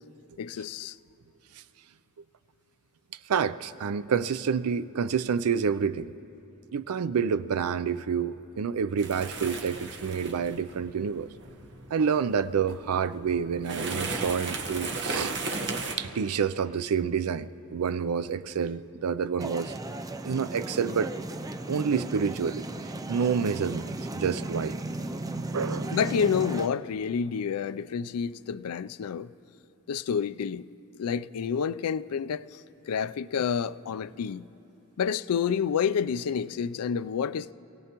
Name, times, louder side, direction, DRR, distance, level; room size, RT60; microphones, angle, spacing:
voice 1, 0.4-1.0 25.9-29.3 29.9-30.7 31.0-32.6 32.9-34.5 35.0-37.5, left 7 dB, 90° left, 0.4 m, -29 dB
voice 2, 3.3-6.1 6.7-11.3 11.9-15.4 16.0-19.7 20.2-21.1 21.7-22.7 23.1-24.8 25.4-26.0, right 6 dB, 85° right, 0.4 m, -28 dB
sound 1, 9.0-16.0, right 3 dB, 55° right, 1.2 m, -35 dB
sound 2, 19.4-26.7, right 2 dB, 15° right, 0.4 m, -35 dB
27.0 x 17.5 x 3.0 m
head